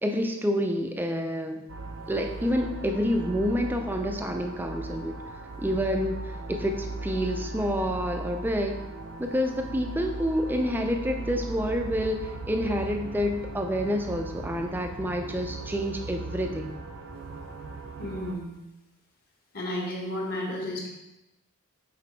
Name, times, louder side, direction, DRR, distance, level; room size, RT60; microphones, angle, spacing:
voice 1, 0.0-1.6 2.1-5.2 5.6-8.8 9.2-16.7, equal, 10° right, 4 dB, 0.4 m, -28 dB
sound 1, 1.7-18.4, right 2 dB, 55° right, 0.6 m, -38 dB
voice 2, 18.0-18.6 19.5-20.9, left 1 dB, 45° left, -2 dB, 1.5 m, -32 dB
6.0 x 4.0 x 4.4 m, 0.97 s
head